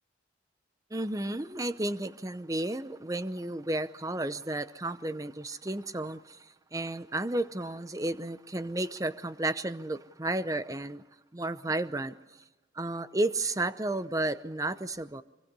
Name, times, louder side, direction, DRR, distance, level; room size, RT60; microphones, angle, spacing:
voice 1, 0.9-11.0 11.3-12.1 12.7-15.2, right 2 dB, 20° right, 13 dB, 0.8 m, -32 dB
25.0 x 23.5 x 5.5 m, 1.1 s
head